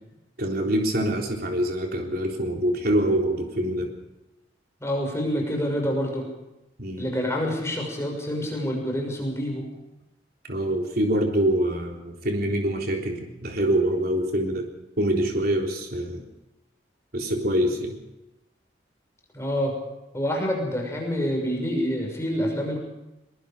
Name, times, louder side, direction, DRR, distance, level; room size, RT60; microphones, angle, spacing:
voice 1, 0.4-3.9 6.8-7.1 10.5-14.7 15.0-16.3 17.1-18.0, right 1 dB, 55° right, 1 dB, 3.7 m, -25 dB
voice 2, 4.8-6.3 7.0-9.7 19.3-19.7 20.1-22.8, equal, 15° left, 1 dB, 6.1 m, -27 dB
23.0 x 23.0 x 5.1 m, 0.94 s
head